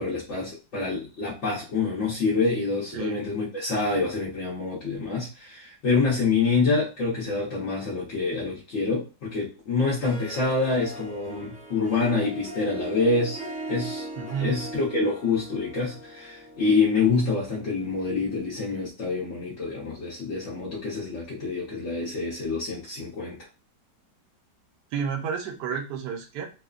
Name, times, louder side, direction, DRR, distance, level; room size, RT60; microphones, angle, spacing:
voice 1, 0.0-13.4 13.7-14.1 14.4-23.4, left 4 dB, 55° left, -7 dB, 1.0 m, -26 dB
Harp, 9.9-18.5, right 2 dB, 5° right, 0.9 m, -39 dB
voice 2, 14.2-14.5 24.9-26.5, right 6 dB, 90° right, 3 dB, 1.2 m, -30 dB
3.0 x 2.1 x 2.3 m, 0.32 s
omnidirectional pair, 1.8 m